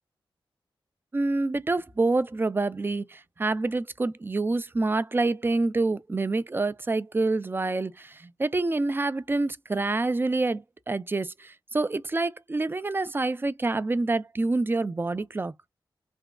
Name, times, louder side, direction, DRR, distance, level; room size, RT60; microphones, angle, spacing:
voice 1, 1.1-15.5, right 3 dB, 25° right, 0.4 m, -27 dB
3.4 x 2.0 x 2.2 m
cardioid pair, 60°, 9 cm